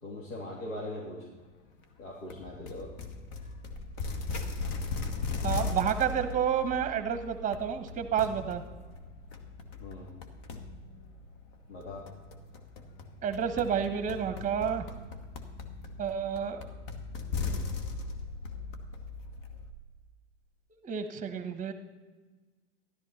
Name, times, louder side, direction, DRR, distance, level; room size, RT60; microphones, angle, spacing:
voice 1, 0.0-1.2 2.0-2.9 9.8-10.1 11.7-12.0, left 1 dB, 80° left, -5 dB, 3.1 m, -40 dB
sound 1, 2.3-19.7, left 4 dB, 45° left, 1.5 m, -38 dB
voice 2, 5.4-8.6 13.2-14.8 16.0-16.6 20.8-21.7, right 8 dB, 20° right, 9 dB, 1.2 m, -30 dB
13.5 x 12.0 x 4.4 m, 1.3 s
hypercardioid pair, 105°, 38 cm